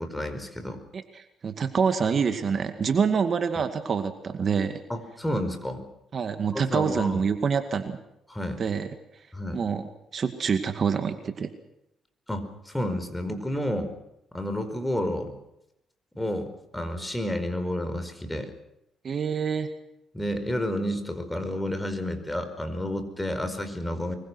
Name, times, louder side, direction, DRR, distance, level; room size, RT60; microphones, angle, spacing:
voice 1, 0.0-0.8 4.9-5.8 6.5-7.2 8.3-8.6 9.3-9.6 12.3-13.9 14.3-15.3 16.1-18.5 20.1-24.1, left 1 dB, 10° left, 8 dB, 5.0 m, -30 dB
voice 2, 0.9-4.8 6.1-8.0 8.6-8.9 9.5-11.5 19.0-19.7, right 6 dB, 50° right, 8 dB, 2.2 m, -26 dB
25.0 x 22.5 x 6.3 m, 0.84 s
cardioid pair, 90°, 0 cm